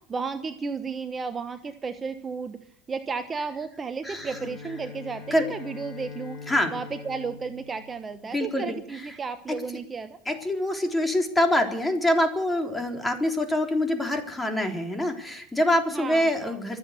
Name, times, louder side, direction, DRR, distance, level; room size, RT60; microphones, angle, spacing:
voice 1, 0.1-2.6 2.9-6.4 6.7-10.2 15.9-16.8, right 5 dB, 25° right, 9 dB, 1.1 m, -33 dB
voice 2, 4.0-4.5 5.3-5.5 6.5-6.7 8.3-9.2 10.3-16.8, left 1 dB, 10° left, 4 dB, 3.6 m, -25 dB
Bowed string instrument, 4.1-8.7, left 5 dB, 50° left, 5.2 m, -43 dB
24.5 x 8.3 x 6.7 m, 0.66 s
supercardioid pair, 95°, 0 cm